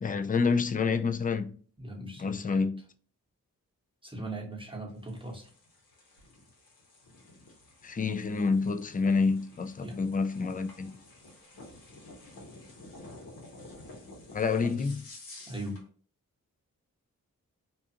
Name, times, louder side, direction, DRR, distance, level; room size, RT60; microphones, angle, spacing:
voice 1, 0.0-1.6 2.2-2.8 7.8-10.9 14.3-15.0, left 4 dB, 25° left, 0.4 m, -28 dB
voice 2, 1.8-2.7 4.0-5.5 9.8-10.0 14.6-14.7 15.5-15.8, right 1 dB, 15° right, 1.1 m, -39 dB
sound 1, 4.9-15.9, left 2 dB, 80° left, 1.0 m, -51 dB
2.5 x 2.3 x 2.7 m
cardioid pair, 40°, 35 cm